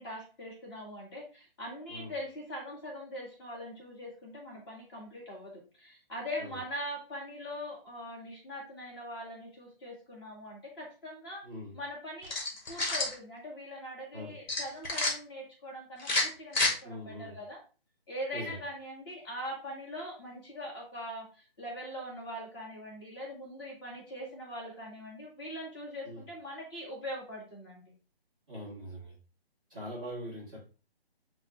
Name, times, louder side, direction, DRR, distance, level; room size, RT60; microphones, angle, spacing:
voice 1, 0.0-11.4 11.7-12.3 12.7-17.6 18.1-27.9, equal, 25° left, -3 dB, 1.8 m, -42 dB
voice 2, 11.4-11.8 14.1-14.4 16.8-17.3 18.3-18.6 26.0-26.2 28.5-29.1 29.7-30.6, equal, 5° right, -13 dB, 0.5 m, -42 dB
sound 1, 12.2-13.1 14.5-15.1 16.0-16.7, left 2 dB, 45° left, 1.8 m, -29 dB
6.5 x 2.3 x 3.2 m, 0.34 s
hypercardioid pair, 160°, 31 cm